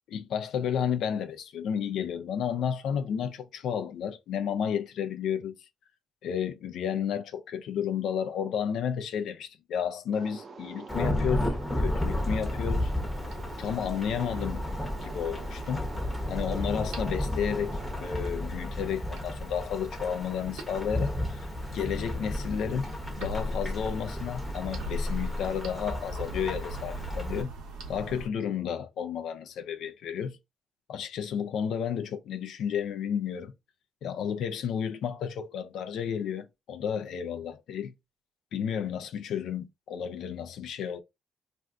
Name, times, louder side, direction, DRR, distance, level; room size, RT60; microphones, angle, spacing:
voice 1, 0.1-5.5 6.2-12.9 13.6-14.6 15.0-15.9 16.3-21.5 21.7-22.9 23.2-27.5 27.9-30.4 30.9-33.5 34.0-37.9 38.5-41.0, left 8 dB, 75° left, 0.4 m, -32 dB
sound 1, 10.1-18.3, right 4 dB, 45° right, 0.4 m, -45 dB
Thunderstorm / Rain, 10.9-27.4, left 1 dB, 10° left, 0.8 m, -33 dB
sound 2, 13.1-28.3, equal, 90° right, 0.8 m, -41 dB
2.5 x 2.2 x 3.5 m
cardioid pair, 90°, 0 cm